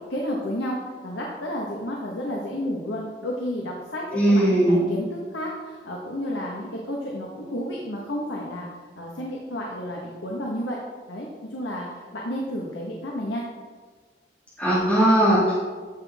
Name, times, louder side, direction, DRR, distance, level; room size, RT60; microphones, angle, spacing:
voice 1, 0.1-8.7 9.0-10.8 11.1-13.4, equal, 90° left, -2 dB, 1.5 m, -31 dB
voice 2, 4.1-4.9 14.6-15.5, right 1 dB, 10° left, -9 dB, 2.1 m, -19 dB
14.5 x 6.1 x 3.6 m, 1.5 s
head